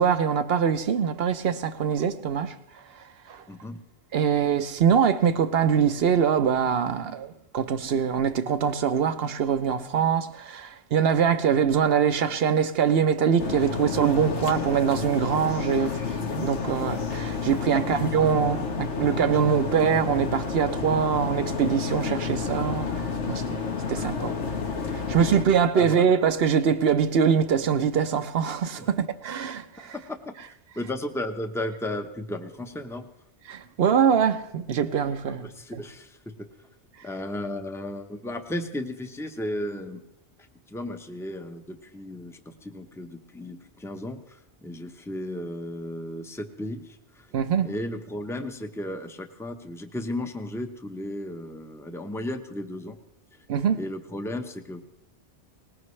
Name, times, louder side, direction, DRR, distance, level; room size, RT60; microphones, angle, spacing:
voice 1, 0.0-2.6 3.3-3.4 4.1-16.0 16.3-23.6 23.9-24.3 24.9-29.9 33.5-35.8 47.3-47.7 53.5-53.8, right 7 dB, 60° right, 0.9 m, -23 dB
voice 2, 3.5-3.8 25.7-26.0 28.8-28.9 29.9-30.3 30.7-33.1 35.3-36.5 37.0-40.0 40.7-53.0 53.3-53.4 53.7-54.8, left 1 dB, 5° left, 0.8 m, -34 dB
sound 1, 13.4-25.4, left 5 dB, 90° left, 1.5 m, -30 dB
19.5 x 19.5 x 3.2 m
omnidirectional pair, 1.2 m